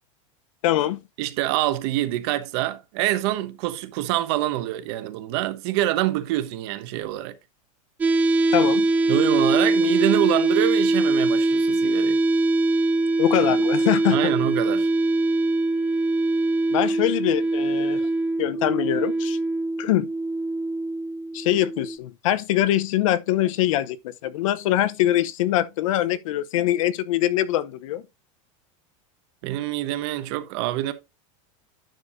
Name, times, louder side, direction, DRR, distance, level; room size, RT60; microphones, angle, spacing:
voice 1, 0.6-1.0 8.5-8.9 13.2-14.2 16.7-18.1 18.4-19.4 19.8-20.1 21.3-28.0, left 13 dB, 70° left, 0.8 m, -23 dB
voice 2, 1.2-7.4 9.1-12.2 14.1-14.9 29.4-30.9, right 14 dB, 50° right, 1.0 m, -25 dB
sound 1, 8.0-22.0, right 2 dB, 10° right, 0.4 m, -22 dB
10.5 x 6.9 x 2.6 m
supercardioid pair, 175°, 18 cm